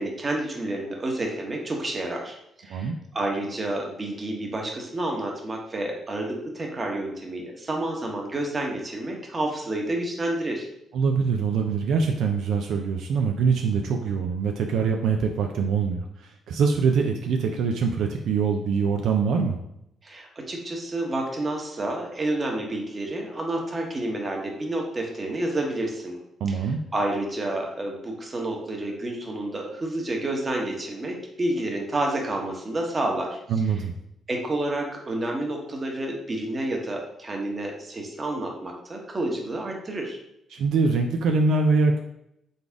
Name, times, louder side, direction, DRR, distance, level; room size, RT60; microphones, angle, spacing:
voice 1, 0.0-2.4 2.6-10.7 20.0-26.2 26.5-26.6 26.9-33.4 34.3-40.2, right 1 dB, 30° right, 1 dB, 1.1 m, -29 dB
voice 2, 10.9-16.0 16.5-19.6 26.4-26.8 33.5-33.9 40.5-42.0, right 5 dB, 75° right, 3 dB, 0.4 m, -23 dB
4.0 x 3.5 x 3.5 m, 0.78 s
cardioid pair, 90°, 0 cm